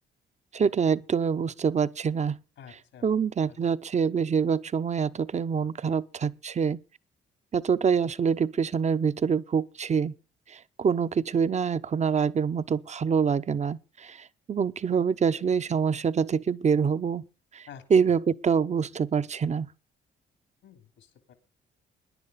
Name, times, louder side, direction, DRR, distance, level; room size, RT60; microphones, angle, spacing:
voice 1, 0.5-2.4 3.0-6.8 7.5-10.1 10.5-17.3 17.5-19.7, right 6 dB, 35° right, 0.7 m, -26 dB
voice 2, 2.6-3.0 3.5-3.7 17.7-17.8 20.6-21.3, left 8 dB, 80° left, 3.0 m, -49 dB
17.0 x 10.5 x 4.1 m
cardioid pair, 90°, 20 cm